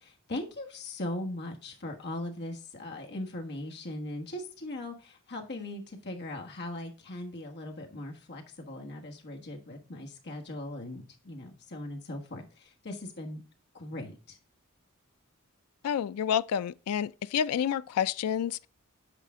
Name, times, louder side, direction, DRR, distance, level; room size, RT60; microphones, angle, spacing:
voice 1, 0.0-13.4 13.7-14.4, left 1 dB, 50° left, 1.4 m, -39 dB
voice 2, 15.8-18.7, left 8 dB, 85° left, 0.3 m, -29 dB
8.2 x 5.0 x 3.5 m
head